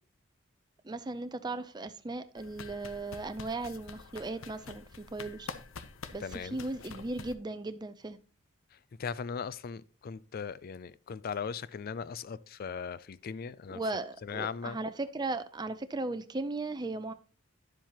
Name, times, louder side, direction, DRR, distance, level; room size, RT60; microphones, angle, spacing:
voice 1, 0.8-5.5 6.1-6.2 6.5-8.2 13.7-17.1, right 2 dB, 20° right, 0.5 m, -37 dB
sound 1, 2.4-7.3, left 4 dB, 70° left, 0.7 m, -47 dB
voice 2, 6.2-6.6 8.7-13.8 14.2-14.8, left 6 dB, 45° left, 0.4 m, -38 dB
11.0 x 7.4 x 2.9 m
head